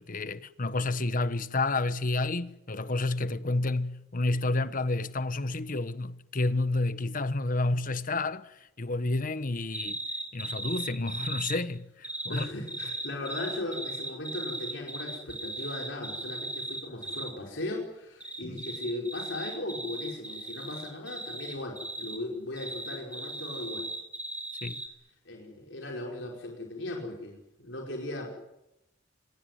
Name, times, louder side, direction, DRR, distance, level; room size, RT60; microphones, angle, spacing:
voice 1, 0.0-10.0 10.3-12.5 18.4-18.6 24.6-24.8, left 2 dB, 45° left, 1.2 m, -30 dB
sound 1, 9.7-11.6 12.0-17.3 18.2-22.2 22.6-24.9, right 2 dB, 10° right, 6.0 m, -37 dB
voice 2, 12.3-23.8 25.2-28.3, left 2 dB, 70° left, 5.0 m, -37 dB
26.0 x 20.5 x 9.5 m
head